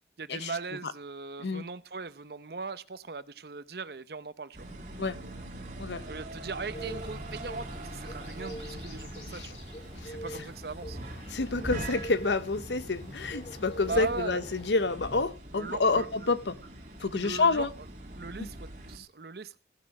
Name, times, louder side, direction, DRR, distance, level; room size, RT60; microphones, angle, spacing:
voice 1, 0.2-4.7 6.1-9.6 10.0-11.0 13.9-14.5 15.5-16.3 17.0-17.9 18.2-19.6, right 4 dB, 65° right, 0.7 m, -39 dB
sound 1, 4.5-19.0, right 1 dB, 45° right, 2.3 m, -43 dB
sound 2, 6.7-14.7, equal, 35° left, 2.5 m, -44 dB
voice 2, 11.3-16.6 17.0-17.7 18.4-18.5, left 3 dB, 90° left, 0.8 m, -28 dB
15.5 x 6.4 x 6.0 m
head